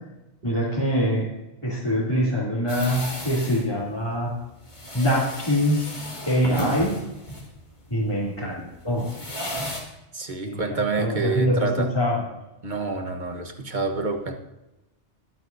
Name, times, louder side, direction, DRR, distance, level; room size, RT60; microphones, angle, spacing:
voice 1, 0.4-1.2 1.6-4.3 4.9-5.8 6.3-7.0 7.9-9.1 10.4-12.2, equal, 25° left, -9 dB, 3.1 m, -24 dB
sound 1, 2.7-9.8, equal, 40° left, 2.4 m, -34 dB
voice 2, 10.1-11.9 12.6-14.3, right 3 dB, 45° right, 4 dB, 1.4 m, -27 dB
21.0 x 9.1 x 2.7 m, 0.99 s
omnidirectional pair, 1.2 m